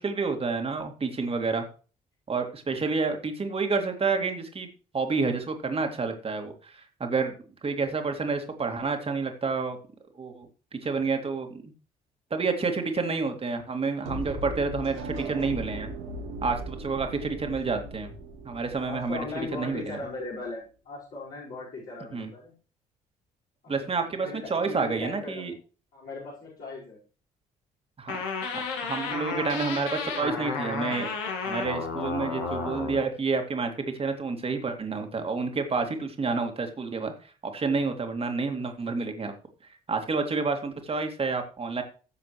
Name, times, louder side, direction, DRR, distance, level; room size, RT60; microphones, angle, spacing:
voice 1, 0.0-1.6 2.3-4.7 4.9-7.3 7.6-9.8 10.2-11.7 12.3-15.9 16.4-18.1 18.4-19.2 19.5-20.0 22.1-22.3 23.7-25.5 28.0-28.2 28.5-31.1 31.4-39.3 39.9-41.8, right 4 dB, 30° right, 5 dB, 2.4 m, -29 dB
sound 1, 14.0-20.0, right 1 dB, 70° right, 2.0 m, -38 dB
voice 2, 18.8-22.5 23.6-25.6 25.9-27.0, left 3 dB, 50° left, -7 dB, 4.8 m, -38 dB
sound 2, 28.1-33.0, left 4 dB, 70° left, 2.0 m, -32 dB
16.0 x 7.5 x 3.2 m, 0.37 s
figure-of-eight pair, 45°, 19 cm